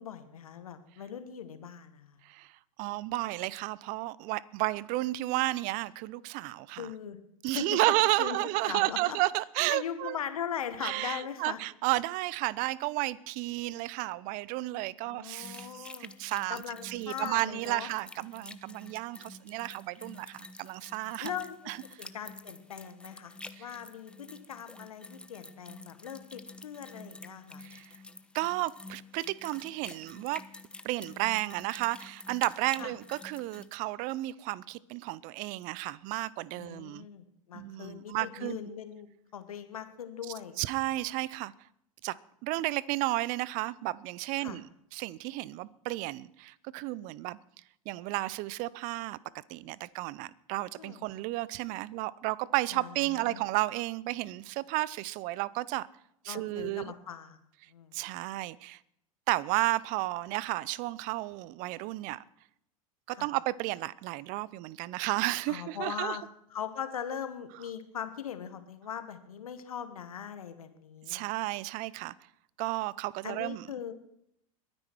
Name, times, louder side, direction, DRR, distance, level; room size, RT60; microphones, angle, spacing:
voice 1, 0.0-2.2 6.8-7.2 7.5-7.8 8.2-9.2 9.7-11.6 15.0-16.1 16.5-17.9 21.2-21.7 22.0-27.6 32.8-32.9 36.6-40.5 44.4-44.6 50.8-51.1 52.7-53.4 56.3-57.4 57.7-57.9 63.1-63.3 65.5-66.2 66.5-71.2 73.2-73.9, left 8 dB, 80° left, 1.5 m, -40 dB
voice 2, 2.8-6.9 7.4-10.2 10.8-21.3 21.7-21.8 23.6-23.7 27.6-27.9 28.3-30.4 30.8-37.1 37.5-38.6 40.6-41.5 42.0-42.2 42.4-44.7 44.9-47.4 47.9-49.2 49.5-55.9 56.2-56.9 57.9-58.8 59.3-62.2 63.1-66.2 71.1-72.1 72.6-73.7, right 19 dB, 50° right, 0.7 m, -32 dB
sound 1, 15.4-33.7, left 2 dB, 5° left, 0.9 m, -49 dB
22.0 x 9.8 x 4.6 m
hypercardioid pair, 90°, 18 cm